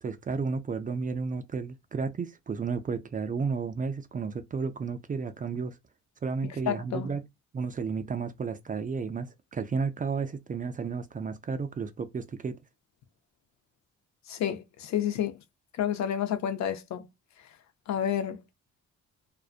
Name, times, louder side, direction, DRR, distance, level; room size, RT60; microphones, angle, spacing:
voice 1, 0.0-5.8 6.2-7.2 7.5-12.6, right 5 dB, 30° right, 0.3 m, -32 dB
voice 2, 6.4-7.1 14.3-15.4 15.8-17.1 17.9-18.4, left 9 dB, 65° left, 0.6 m, -30 dB
2.5 x 2.1 x 2.4 m
cardioid pair, 90°, 30 cm